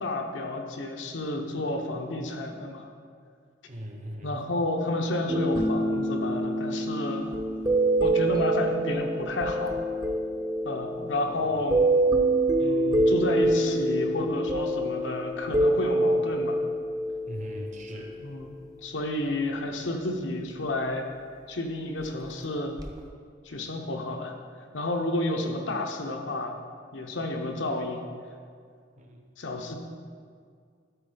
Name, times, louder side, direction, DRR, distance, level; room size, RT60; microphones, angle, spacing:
voice 1, 0.0-2.9 4.2-7.4 8.0-9.8 10.6-11.9 12.6-16.6 18.2-21.1 21.5-22.8 23.4-24.3 24.7-26.6 26.9-28.0 29.4-29.8, left 2 dB, 80° left, 3 dB, 0.9 m, -31 dB
voice 2, 3.6-4.4 17.3-18.2 29.0-29.3, equal, 45° right, 2 dB, 1.0 m, -39 dB
sound 1, 5.3-18.4 22.8-23.0, right 1 dB, 20° right, 0.7 m, -26 dB
12.5 x 4.2 x 3.9 m, 2.1 s
head